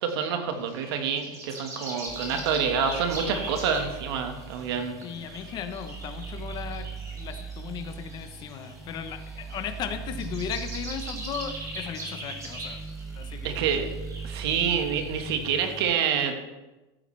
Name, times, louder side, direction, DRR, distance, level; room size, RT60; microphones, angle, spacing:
voice 1, 0.0-5.0 13.4-13.9 14.2-16.3, right 7 dB, 70° right, 5 dB, 1.7 m, -27 dB
sound 1, 0.6-15.7, right 2 dB, 25° right, 3.0 m, -41 dB
sound 2, 2.1-16.0, right 5 dB, ahead, 0.5 m, -40 dB
voice 2, 5.0-6.9 7.1-12.8 13.1-13.6, left 8 dB, 30° left, 8 dB, 1.0 m, -36 dB
14.5 x 8.5 x 3.4 m, 1.1 s
supercardioid pair, 150°, 13 cm